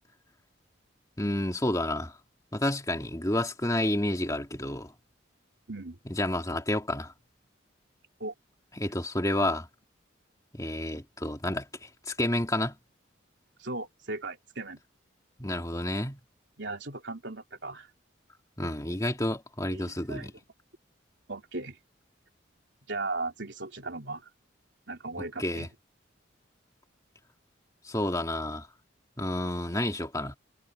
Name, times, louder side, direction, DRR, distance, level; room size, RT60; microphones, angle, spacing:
voice 1, 1.2-2.1 2.5-4.9 6.1-7.1 8.8-9.7 10.5-12.7 15.4-16.2 18.6-20.3 25.4-25.7 27.9-28.7 29.2-30.4, left 1 dB, 15° left, 2.8 m, -30 dB
voice 2, 5.7-6.0 8.2-8.3 13.6-14.8 16.6-17.9 19.7-20.3 21.3-21.8 22.9-24.3 24.9-25.7, right 2 dB, 65° right, 3.6 m, -37 dB
head